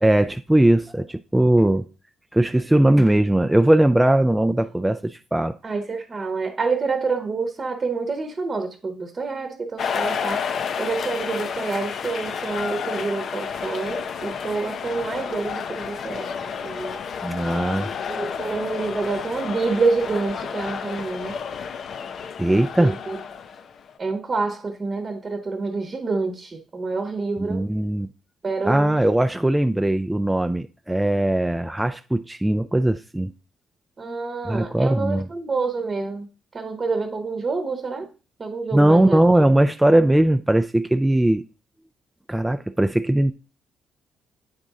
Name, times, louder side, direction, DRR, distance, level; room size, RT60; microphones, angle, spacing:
voice 1, 0.0-1.8 2.3-5.6 17.2-17.9 22.4-22.9 27.4-28.1 28.6-33.3 34.5-35.2 38.7-41.4 42.3-43.3, right 1 dB, 10° right, 0.3 m, -19 dB
voice 2, 5.6-10.4 10.8-17.0 18.0-21.3 22.8-23.2 24.0-27.7 28.4-29.0 34.0-36.3 36.5-38.1 38.4-39.2, right 4 dB, 35° right, 0.9 m, -27 dB
sound 1, 9.8-24.0, left 6 dB, 60° left, 0.5 m, -31 dB
8.8 x 4.0 x 3.6 m
cardioid pair, 90°, 0 cm